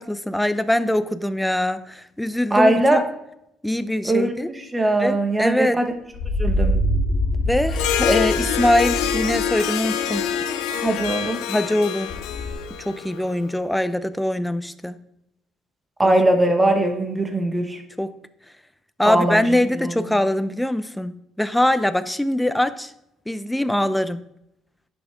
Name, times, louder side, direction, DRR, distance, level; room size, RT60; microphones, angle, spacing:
voice 1, 0.0-3.0 3.6-4.5 5.0-5.8 7.5-10.2 11.5-12.1 12.8-15.0 16.0-16.1 18.0-18.2 19.0-22.9 23.3-24.2, left 1 dB, 5° left, 12 dB, 0.6 m, -23 dB
voice 2, 2.5-3.0 4.0-5.8 6.4-6.8 10.8-11.4 16.0-17.8 19.0-19.4 19.7-20.0, right 1 dB, 20° right, 5 dB, 1.6 m, -20 dB
sound 1, 6.1-9.4 9.9-10.7 11.0-11.1 12.1-12.5, equal, 50° left, 3.6 m, -25 dB
Harp, 7.7-13.4, left 10 dB, 85° left, 0.8 m, -25 dB
10.5 x 6.1 x 3.6 m, 0.79 s
supercardioid pair, 85°, 0 cm